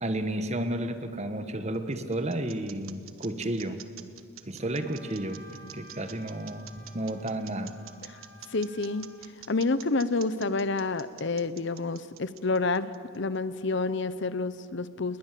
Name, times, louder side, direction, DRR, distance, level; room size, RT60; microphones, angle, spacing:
voice 1, 0.0-3.8 4.5-7.7, right 1 dB, 30° right, 9 dB, 1.4 m, -32 dB
sound 1, 1.5-13.4, right 12 dB, 85° right, 1.3 m, -48 dB
Wind instrument woodwind instrument, 4.6-9.2, right 1 dB, 55° right, 6.1 m, -53 dB
voice 2, 8.5-9.1 9.5-15.2, left 3 dB, 60° left, 14 dB, 0.8 m, -29 dB
29.5 x 21.0 x 7.7 m, 2.3 s
head